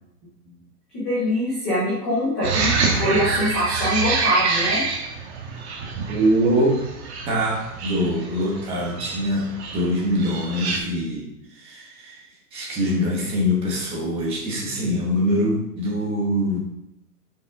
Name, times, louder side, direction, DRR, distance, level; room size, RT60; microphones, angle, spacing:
voice 1, 1.0-4.8, equal, 5° left, -11 dB, 0.5 m, -23 dB
sound 1, 2.4-10.8, right 4 dB, 40° right, 1.4 m, -27 dB
voice 2, 6.1-6.8 7.3-11.3 11.5-12.2 12.5-16.6, equal, 10° right, -2 dB, 1.0 m, -23 dB
9.4 x 5.7 x 3.4 m, 0.83 s
hypercardioid pair, 165°, 48 cm